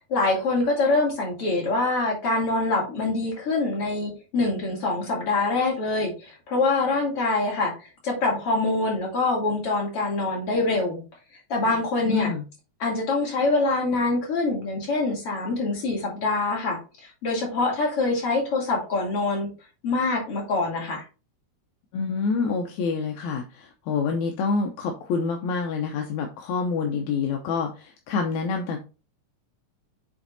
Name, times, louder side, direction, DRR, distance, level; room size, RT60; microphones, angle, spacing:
voice 1, 0.1-7.7 8.0-11.0 11.5-12.3 12.8-16.8 17.2-19.5 19.8-21.0, left 3 dB, 50° left, -2 dB, 3.7 m, -24 dB
voice 2, 12.0-12.4 21.9-28.8, left 4 dB, 80° left, 3 dB, 2.2 m, -27 dB
7.6 x 4.4 x 4.1 m, 0.32 s
omnidirectional pair, 3.4 m